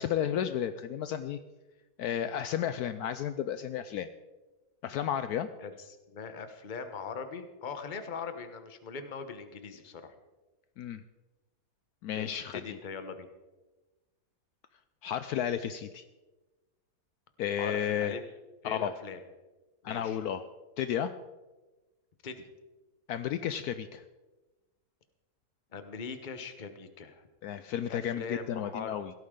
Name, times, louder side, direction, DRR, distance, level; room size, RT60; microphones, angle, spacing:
voice 1, 0.0-1.4 2.0-4.1 4.8-5.5 10.8-11.0 12.0-12.8 15.0-16.0 17.4-18.2 18.6-18.9 19.8-20.4 20.8-21.1 23.1-24.0 27.4-29.1, left 9 dB, 70° left, 11 dB, 1.0 m, -32 dB
voice 2, 5.6-10.1 12.1-13.3 17.6-18.2 18.6-19.2 19.8-20.2 22.2-22.5 25.7-27.3 27.9-29.0, left 5 dB, 35° left, 8 dB, 1.0 m, -41 dB
17.0 x 13.0 x 3.7 m, 1.2 s
omnidirectional pair, 1.8 m